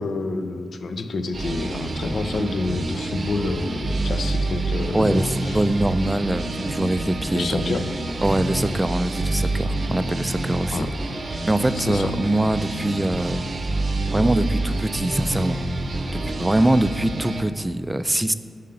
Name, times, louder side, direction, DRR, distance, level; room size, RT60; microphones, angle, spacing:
voice 1, 0.0-5.6 7.3-7.8 10.7-10.9 11.7-12.1, left 3 dB, 70° left, 8 dB, 0.4 m, -28 dB
sound 1, 1.3-17.4, right 2 dB, 55° right, 0.6 m, -27 dB
voice 2, 4.9-7.7 8.2-10.9 11.4-13.5 14.1-15.6 16.1-18.3, right 1 dB, 15° right, 11 dB, 0.3 m, -23 dB
5.6 x 3.7 x 5.3 m, 2.1 s
supercardioid pair, 45°, 0 cm